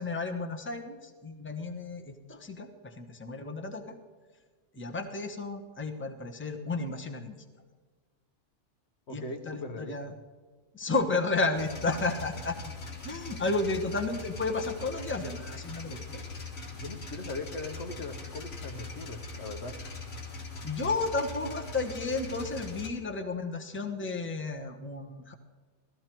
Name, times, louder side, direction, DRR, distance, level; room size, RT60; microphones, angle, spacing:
voice 1, 0.0-3.9 4.7-7.4 9.1-10.1 10.7-12.6 13.0-16.0 20.6-25.3, left 3 dB, 10° left, 5 dB, 0.9 m, -32 dB
voice 2, 9.1-10.2 16.1-16.2 16.7-19.8, left 2 dB, 70° left, 6 dB, 1.3 m, -40 dB
sound 1, 11.5-22.9, left 3 dB, 85° left, 2.0 m, -41 dB
17.0 x 13.5 x 4.5 m, 1.4 s
omnidirectional pair, 1.2 m